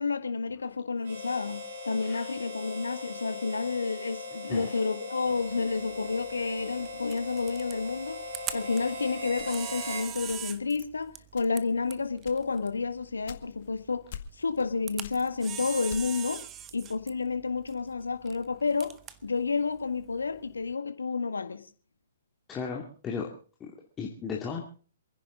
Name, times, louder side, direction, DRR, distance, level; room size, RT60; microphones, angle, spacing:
voice 1, 0.0-8.2 8.5-14.0 14.4-16.4 16.7-18.9 19.2-21.6, left 4 dB, 85° left, 9 dB, 1.8 m, -30 dB
Harmonica, 1.0-10.1, left 1 dB, 65° right, 5.7 m, -40 dB
Camera, 5.3-20.7, right 10 dB, 20° right, 1.1 m, -44 dB
sound 1, 8.5-9.9 10.3-10.7 11.3-11.8 12.2-13.8 14.1-14.7 15.0-16.3, left 9 dB, 50° left, 1.9 m, -46 dB
voice 2, 22.5-23.3 23.6-23.7 24.0-24.6, left 5 dB, 20° left, -1 dB, 2.4 m, -35 dB
28.0 x 10.5 x 3.8 m, 0.40 s
figure-of-eight pair, 125°, 0 cm